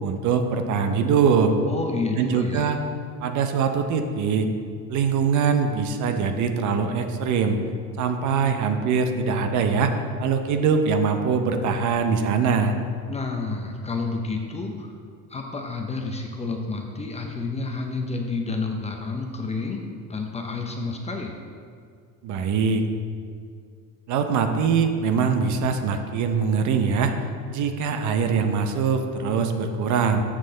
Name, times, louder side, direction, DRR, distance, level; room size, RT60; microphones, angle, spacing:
voice 1, 0.0-1.5 2.2-2.8 3.2-4.5 4.9-7.6 8.0-9.9 10.2-12.7 22.2-22.9 24.1-27.1 27.5-30.2, right 6 dB, 50° right, 7 dB, 0.7 m, -22 dB
voice 2, 1.7-2.7 13.1-14.9 15.3-19.8 20.1-21.3, left 3 dB, 15° left, 2 dB, 0.5 m, -30 dB
7.4 x 6.2 x 3.8 m, 2.2 s
cardioid pair, 125°, 38 cm